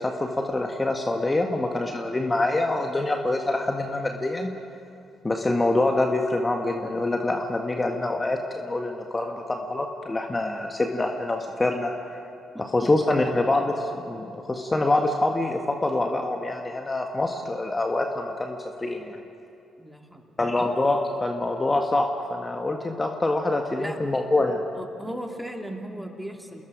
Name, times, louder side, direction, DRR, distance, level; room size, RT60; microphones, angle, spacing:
voice 1, 0.0-4.5 5.2-12.2 12.6-19.2 20.4-24.6, left 2 dB, 25° left, 3 dB, 1.6 m, -25 dB
voice 2, 19.8-20.4 23.7-24.0 24.7-26.6, equal, 5° right, 2 dB, 2.8 m, -37 dB
28.5 x 20.5 x 5.0 m, 2.6 s
hypercardioid pair, 45°, 0 cm